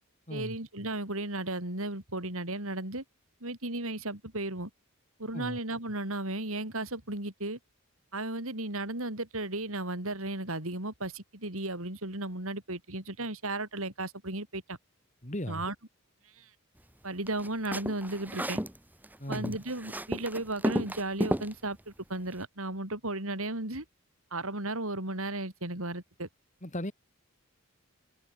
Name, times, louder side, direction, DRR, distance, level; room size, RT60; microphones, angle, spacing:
voice 1, 0.3-3.0 3.4-4.7 5.2-7.6 8.1-14.8 15.5-15.7 16.4-16.5 17.0-18.6 19.3-23.9 24.3-26.3, right 2 dB, 70° right, 5.2 m, -35 dB
voice 2, 15.2-15.7 19.2-19.6 26.6-26.9, left 1 dB, 35° left, 3.5 m, -36 dB
sound 1, 17.3-18.8 19.0-21.5, equal, 10° right, 1.6 m, -32 dB
head